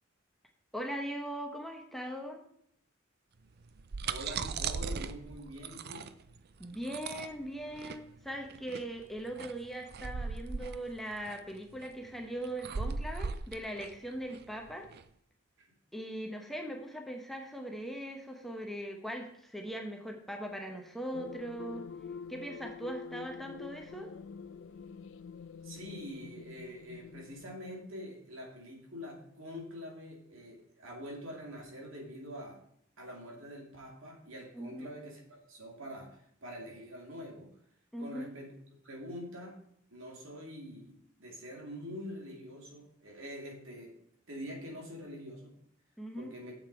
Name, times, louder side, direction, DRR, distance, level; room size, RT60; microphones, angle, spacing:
voice 1, 0.7-2.4 6.6-14.9 15.9-21.8 22.3-24.1 34.5-34.9 37.9-38.3 46.0-46.3, right 1 dB, ahead, 2 dB, 0.9 m, -40 dB
sound 1, 3.6-15.0, right 5 dB, 50° right, 0.5 m, -39 dB
voice 2, 4.0-6.0 25.6-32.6 33.0-37.5 38.0-38.5 38.8-39.6 39.9-40.9 41.2-43.9 44.3-45.5 46.1-46.6, equal, 70° right, 0 dB, 2.6 m, -45 dB
sound 2, 21.1-27.5, left 6 dB, 65° left, 0.4 m, -46 dB
9.4 x 7.0 x 4.7 m, 0.69 s
head